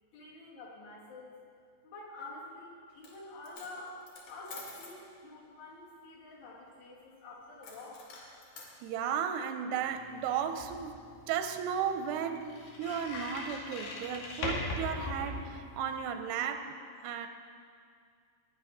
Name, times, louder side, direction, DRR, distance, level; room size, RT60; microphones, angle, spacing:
voice 1, 0.1-1.4 1.8-4.0 4.3-8.1, left 2 dB, 70° left, -7 dB, 5.3 m, -48 dB
Coin (dropping), 2.9-3.2 3.4-5.0 7.6-8.7, left 3 dB, 55° left, 3.4 m, -49 dB
voice 2, 8.8-11.0 11.3-16.8 17.0-17.3, right 8 dB, 85° right, 7 dB, 2.7 m, -34 dB
sound 1, 9.8-16.0, left 2 dB, 90° left, 4.3 m, -40 dB
19.5 x 9.7 x 5.3 m, 2.2 s
omnidirectional pair, 4.8 m